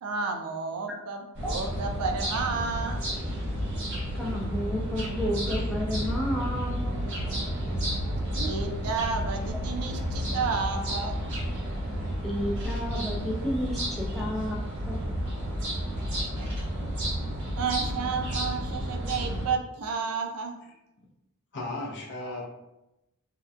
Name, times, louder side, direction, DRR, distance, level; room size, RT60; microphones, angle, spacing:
voice 1, 0.0-3.0 8.3-11.2 16.1-16.4 17.6-20.6, right 5 dB, 80° right, 3 dB, 0.4 m, -31 dB
sound 1, 1.3-19.5, equal, 55° right, 1.0 m, -31 dB
voice 2, 4.2-7.0 12.2-15.0, equal, ahead, -4 dB, 0.4 m, -31 dB
voice 3, 21.5-22.5, left 2 dB, 50° left, -2 dB, 0.6 m, -35 dB
2.7 x 2.1 x 2.3 m, 0.93 s
head